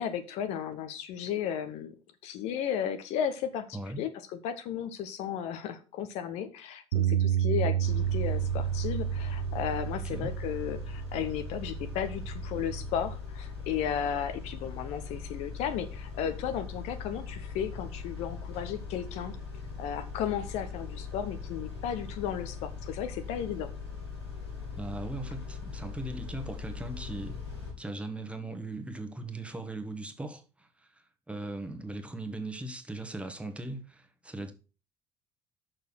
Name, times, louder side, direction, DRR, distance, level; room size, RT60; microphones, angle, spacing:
voice 1, 0.0-1.9 2.2-19.3 19.8-23.7, left 8 dB, 55° left, 1.0 m, -34 dB
voice 2, 3.7-4.0 10.0-10.3 24.8-27.4 27.8-34.5, right 2 dB, 10° right, 1.5 m, -39 dB
Bass guitar, 6.9-13.2, right 10 dB, 65° right, 0.5 m, -31 dB
Car / Idling / Accelerating revving vroom, 7.8-27.7, left 5 dB, 80° left, 3.1 m, -40 dB
6.9 x 6.2 x 6.4 m
figure-of-eight pair, 60°, 14 cm